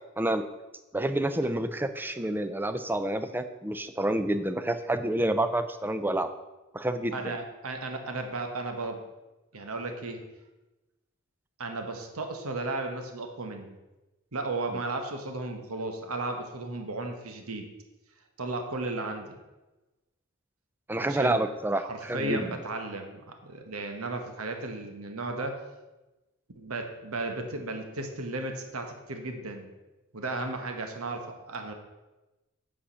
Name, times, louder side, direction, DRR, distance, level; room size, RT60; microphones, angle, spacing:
voice 1, 0.9-6.3 6.7-7.3 20.9-22.5, right 1 dB, 10° right, 10 dB, 0.4 m, -28 dB
voice 2, 7.1-9.0 9.5-10.2 11.6-13.8 14.3-17.7 18.4-19.4 20.9-21.4 21.8-25.6 26.5-29.7 30.1-31.7, right 2 dB, 90° right, 5 dB, 1.1 m, -34 dB
8.6 x 4.9 x 5.6 m, 1.1 s
head